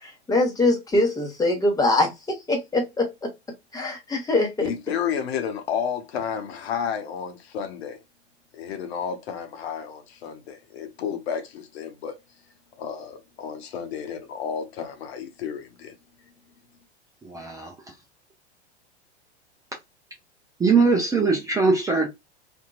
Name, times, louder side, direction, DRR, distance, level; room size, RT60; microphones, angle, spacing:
voice 1, 0.0-2.1 2.5-3.1 3.7-4.7, left 2 dB, 10° left, 1.2 m, -23 dB
voice 2, 4.6-8.0 8.5-12.1 12.8-15.9, left 7 dB, 60° left, 0.9 m, -31 dB
voice 3, 17.3-17.7 20.6-22.1, right 4 dB, 10° right, 0.5 m, -21 dB
2.8 x 2.6 x 2.3 m
figure-of-eight pair, 95°, 35 cm